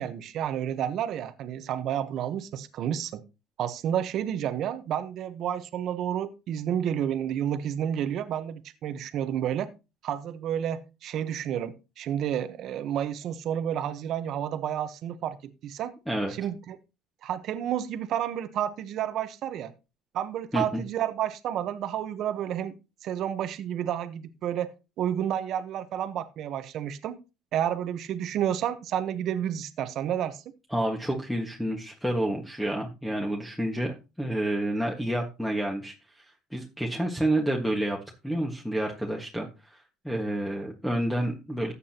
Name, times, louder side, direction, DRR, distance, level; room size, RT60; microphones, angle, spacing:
voice 1, 0.0-3.2 3.6-9.7 10.0-15.4 15.6-15.9 16.4-16.8 17.2-19.7 20.1-22.7 23.0-24.7 25.0-27.2 27.5-30.4, right 10 dB, 55° right, 10 dB, 1.1 m, -30 dB
voice 2, 30.7-36.2 36.5-38.0 38.2-41.7, right 1 dB, ahead, 1 dB, 1.7 m, -29 dB
14.0 x 8.4 x 3.0 m, 0.29 s
cardioid pair, 110°, 0 cm